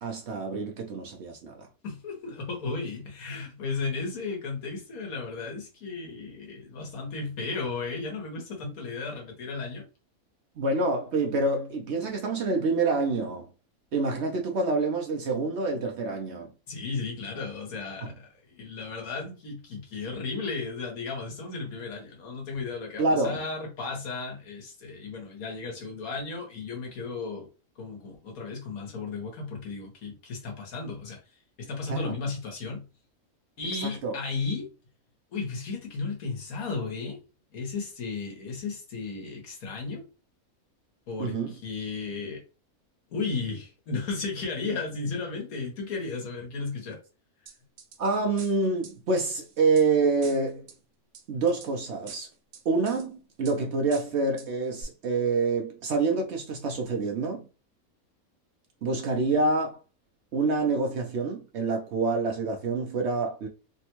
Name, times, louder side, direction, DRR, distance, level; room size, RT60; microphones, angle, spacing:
voice 1, 0.0-1.7 10.6-13.5 13.9-16.5 18.0-18.1 23.0-23.4 31.9-32.2 33.8-34.2 41.2-41.5 48.0-50.7 51.3-52.3 52.6-57.5 58.8-59.8 60.3-63.5, right 3 dB, 60° right, 0.8 m, -27 dB
voice 2, 1.8-9.9 16.7-27.5 27.8-31.2 31.6-32.8 33.6-34.7 35.3-37.2 37.5-40.1 41.1-42.4 43.1-47.0, left 4 dB, 80° left, 1.5 m, -34 dB
sound 1, 47.5-48.0 48.4-49.9 50.2-50.8 51.1-51.7 52.1-53.1 53.4-53.6 53.9-54.5 54.8-54.9, right 6 dB, 90° right, 1.1 m, -47 dB
3.4 x 2.2 x 2.9 m
omnidirectional pair, 1.5 m